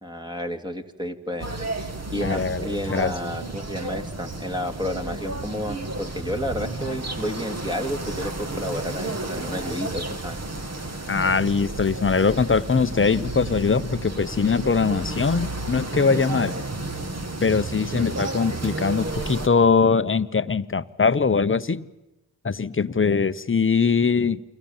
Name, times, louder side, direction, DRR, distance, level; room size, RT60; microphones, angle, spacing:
voice 1, 0.0-1.5 2.1-10.4, equal, 10° right, 2.5 m, -31 dB
sound 1, 1.4-19.5, right 2 dB, 30° right, 2.4 m, -32 dB
voice 2, 2.2-3.1 11.1-16.6 17.4-21.9 22.4-24.4, left 5 dB, 25° left, 1.0 m, -22 dB
29.5 x 24.0 x 7.4 m
supercardioid pair, 45°, 48 cm